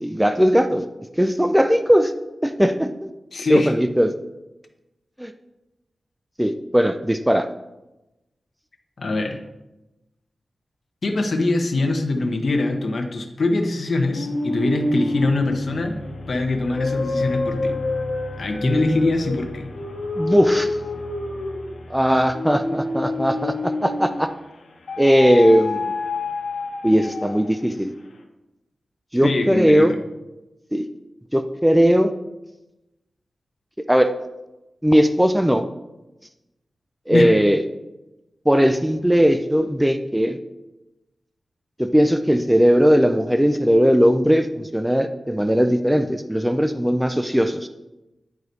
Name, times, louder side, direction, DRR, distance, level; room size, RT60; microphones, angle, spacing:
voice 1, 0.0-0.9 1.2-2.1 2.4-3.1 3.5-4.1 5.2-5.3 6.4-7.5 18.6-18.9 20.2-20.8 21.9-24.3 25.0-25.9 26.8-27.9 29.1-29.9 30.7-30.8 31.3-32.1 33.9-34.1 34.8-35.6 37.1-37.6 38.5-40.4 41.8-47.7, equal, 5° right, 8 dB, 0.4 m, -18 dB
voice 2, 3.3-3.7 9.0-9.4 11.0-16.0 16.3-17.7 18.4-19.7 29.2-30.0 37.1-37.3, left 2 dB, 55° left, 4 dB, 0.9 m, -23 dB
sound 1, 14.1-24.3 24.9-27.6, left 2 dB, 90° left, 1.0 m, -28 dB
9.5 x 4.9 x 4.0 m, 0.98 s
wide cardioid pair, 130°, 0 cm